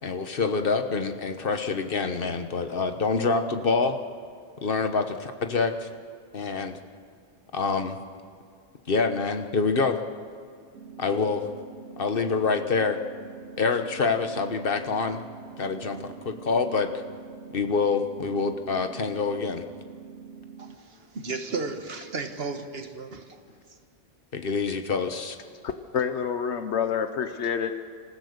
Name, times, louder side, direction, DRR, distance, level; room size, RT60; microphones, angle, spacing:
voice 1, 0.0-4.0 4.6-5.9 6.3-6.8 7.5-8.0 8.9-10.0 11.0-11.4 12.0-13.0 13.6-15.2 15.6-16.9 17.5-19.6 24.3-25.4, left 4 dB, 55° left, 7 dB, 1.4 m, -26 dB
sound 1, 10.7-20.8, right 6 dB, 80° right, 1.2 m, -45 dB
voice 2, 20.6-23.3, right 4 dB, 65° right, 6 dB, 1.7 m, -34 dB
voice 3, 25.6-27.8, left 7 dB, 85° left, 9 dB, 1.1 m, -28 dB
27.0 x 15.0 x 6.7 m, 2.2 s
omnidirectional pair, 1.1 m